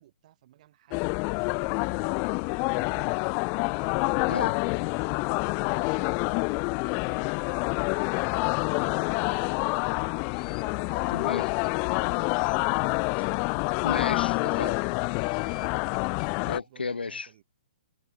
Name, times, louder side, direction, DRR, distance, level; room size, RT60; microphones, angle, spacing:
voice 1, 0.0-3.2 3.7-6.2 6.8-7.4 7.7-9.9 10.3-12.5 13.2-13.4 15.4-15.8 16.6-17.4, right 13 dB, 45° right, 4.1 m, -55 dB
sound 1, 0.9-16.6, left 38 dB, 30° left, 0.3 m, -27 dB
sound 2, 10.1-10.6 11.2-11.3 11.6-11.7 12.2-12.6 13.3-13.4 13.7-13.8 14.8-16.3, left 10 dB, 55° left, 3.7 m, -50 dB
voice 2, 11.1-11.5 13.8-14.9 16.5-17.3, left 4 dB, 85° left, 0.6 m, -33 dB
figure-of-eight pair, 130°, 5 cm